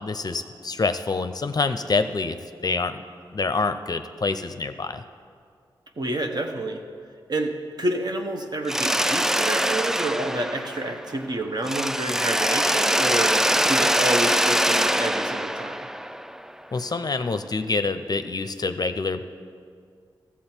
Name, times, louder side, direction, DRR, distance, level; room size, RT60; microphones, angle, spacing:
voice 1, 0.0-2.4 2.6-3.0 3.3-5.0 16.7-19.2, left 3 dB, 45° left, 10 dB, 0.6 m, -26 dB
voice 2, 6.0-6.8 7.3-13.3 13.7-15.8, right 1 dB, 50° right, 4 dB, 1.1 m, -28 dB
Mechanisms, 8.7-11.3 11.6-16.5, equal, 5° right, 0.3 m, -23 dB
13.5 x 7.3 x 4.4 m, 2.2 s
cardioid pair, 45°, 9 cm